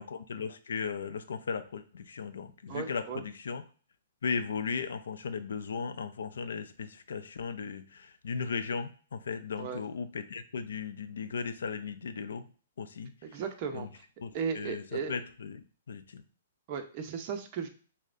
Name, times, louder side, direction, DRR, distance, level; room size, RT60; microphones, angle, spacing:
voice 1, 0.0-3.6 4.2-12.5 12.8-13.4 13.7-13.9 14.2-16.2, left 5 dB, 85° left, 11 dB, 0.4 m, -37 dB
voice 2, 2.7-3.2 9.6-9.8 13.2-14.0 14.3-15.1 16.7-17.7, right 6 dB, 35° right, 5 dB, 0.6 m, -36 dB
6.3 x 2.1 x 2.5 m, 0.40 s
hypercardioid pair, 155°, 0 cm